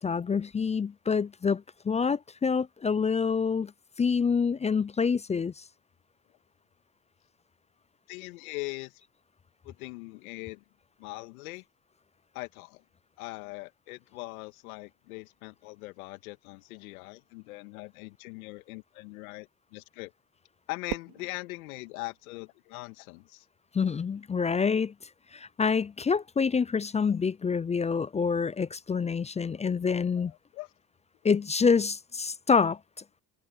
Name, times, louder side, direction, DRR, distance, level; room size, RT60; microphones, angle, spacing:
voice 1, 0.0-3.7 4.0-5.5 23.7-24.9 25.3-30.3 31.2-32.8, left 5 dB, 15° left, 0.4 m, -27 dB
voice 2, 8.1-8.9 9.6-10.6 11.0-11.6 12.3-12.8 13.2-20.1 20.7-23.4 30.1-30.7, left 23 dB, 80° left, 1.9 m, -41 dB
Fireworks, 20.9-23.2, right 21 dB, 70° right, 4.2 m, -43 dB
hypercardioid pair, 75°, 43 cm